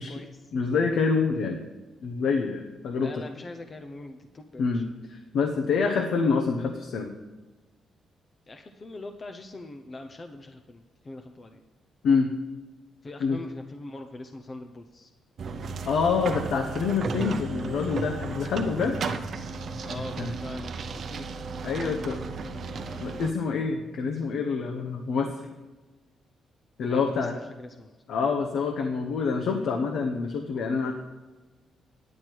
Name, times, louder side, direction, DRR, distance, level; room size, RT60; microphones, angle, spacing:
voice 1, 0.0-0.5 3.0-4.8 5.6-5.7 8.5-11.6 13.0-15.1 19.8-21.4 21.8-23.2 26.8-28.0, left 2 dB, 25° left, 5 dB, 0.6 m, -43 dB
voice 2, 0.5-1.6 2.0-3.2 4.6-7.1 12.0-12.3 13.2-13.4 15.8-19.0 20.2-20.3 21.6-22.2 23.0-25.3 26.8-27.3 28.1-30.9, left 5 dB, 65° left, 4 dB, 0.9 m, -26 dB
sound 1, 15.4-23.3, right 4 dB, 45° right, 0.7 m, -34 dB
9.9 x 9.4 x 4.5 m, 1.2 s
cardioid pair, 165°, 0 cm